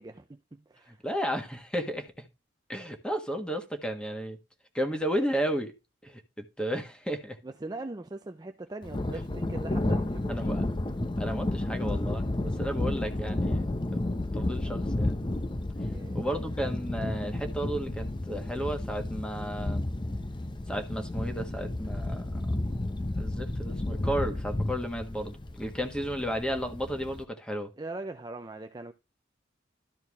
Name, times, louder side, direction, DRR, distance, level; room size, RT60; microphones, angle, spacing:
voice 1, 0.0-1.0 7.4-10.5 15.9-16.4 27.8-28.9, right 2 dB, 20° right, 0.5 m, -41 dB
voice 2, 0.9-2.3 2.7-4.4 4.7-5.7 6.0-7.4 10.3-10.6 11.2-13.6 13.9-15.2 16.1-19.9 20.7-22.4 23.2-27.7, equal, 5° left, 1.5 m, -33 dB
Thunder, 8.8-27.2, left 1 dB, 25° left, 0.8 m, -32 dB
13.0 x 4.6 x 3.5 m
head